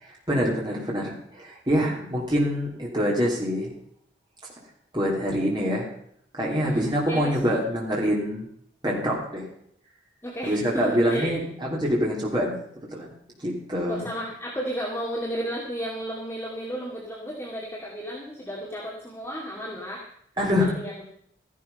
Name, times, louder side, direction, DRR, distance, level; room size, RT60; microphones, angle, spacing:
voice 1, 0.0-3.7 4.9-5.9 6.3-8.4 8.8-9.5 10.4-12.5 12.9-13.1 13.4-14.0 20.4-20.7, equal, 25° right, -3 dB, 3.1 m, -25 dB
voice 2, 6.6-7.6 10.2-11.3 13.9-20.1 20.8-21.0, equal, 10° left, -4 dB, 2.2 m, -33 dB
14.5 x 11.0 x 5.4 m, 0.68 s
head